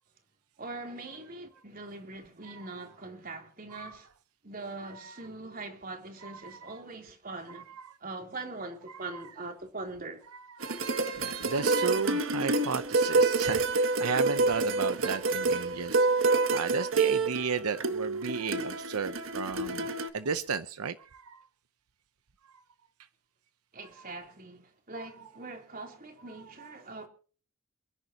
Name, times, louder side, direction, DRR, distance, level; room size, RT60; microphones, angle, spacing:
voice 1, 0.6-4.1 4.4-7.7 8.0-10.2 23.7-27.1, right 3 dB, 40° right, 3.3 m, -42 dB
voice 2, 3.7-4.0 4.8-5.3 6.2-6.8 7.5-8.0 8.9-9.3 10.3-10.8 11.2-16.1 16.5-21.5 23.9-24.1 24.9-25.3 26.3-26.8, right 5 dB, 85° right, 0.7 m, -35 dB
sound 1, 10.6-20.1, right 3 dB, 60° right, 1.6 m, -27 dB
28.5 x 10.5 x 2.9 m
head